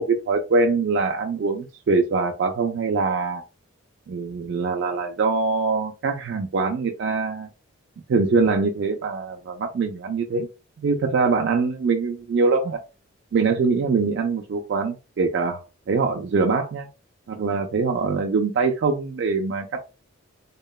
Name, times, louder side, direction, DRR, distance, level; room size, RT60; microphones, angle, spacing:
voice 1, 0.0-3.4 4.1-7.5 8.1-10.5 10.8-12.8 13.3-15.6 15.9-16.9 17.3-19.8, right 4 dB, 55° right, 3 dB, 0.4 m, -23 dB
2.9 x 2.1 x 2.2 m, 0.30 s
head